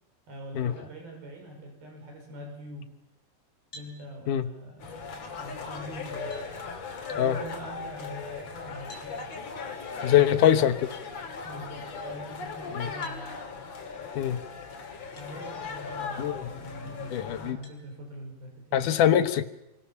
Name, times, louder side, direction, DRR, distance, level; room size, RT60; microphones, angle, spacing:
voice 1, 0.3-2.9 3.7-6.3 7.1-9.3 10.0-10.7 11.4-13.4 15.2-18.9, right 1 dB, 75° right, 2 dB, 7.4 m, -43 dB
sound 1, 3.7-4.0 5.6-5.7 6.3-6.5 8.9-9.1 10.9-11.1 13.0-13.2 15.1-15.3 15.9-16.0 17.6-17.8, equal, 20° left, 4.6 m, -48 dB
sound 2, 4.8-17.5, left 5 dB, 50° left, 3.4 m, -38 dB
voice 2, 10.0-10.7 12.7-12.9 14.2-14.4 16.2-16.5 17.1-17.6 18.7-19.4, left 10 dB, 65° left, 9 dB, 2.5 m, -23 dB
27.0 x 24.0 x 7.2 m, 0.89 s
omnidirectional pair, 4.3 m